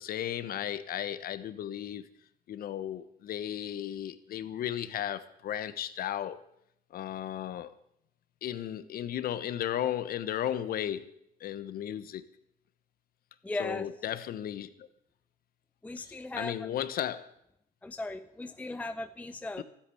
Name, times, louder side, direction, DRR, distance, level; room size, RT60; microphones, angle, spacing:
voice 1, 0.0-2.0 2.5-6.4 6.9-7.7 8.4-11.1 11.4-12.2 13.6-14.9 16.0-17.3 19.6-19.7, left 11 dB, 60° left, 14 dB, 1.1 m, -35 dB
voice 2, 13.4-13.9 15.8-16.7 17.8-19.6, left 2 dB, 10° left, 11 dB, 0.5 m, -37 dB
13.0 x 8.9 x 10.0 m, 0.77 s
cardioid pair, 110°, 17 cm